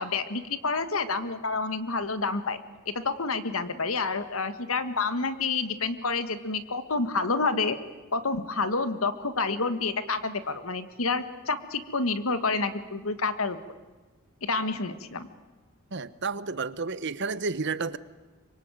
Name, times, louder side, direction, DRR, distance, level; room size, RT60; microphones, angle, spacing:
voice 1, 0.0-2.6 2.8-7.8 8.1-13.6 14.4-15.3, left 4 dB, 80° left, 11 dB, 1.7 m, -29 dB
voice 2, 15.9-18.0, right 4 dB, 55° right, 15 dB, 1.0 m, -31 dB
25.5 x 23.0 x 9.2 m, 1.2 s
head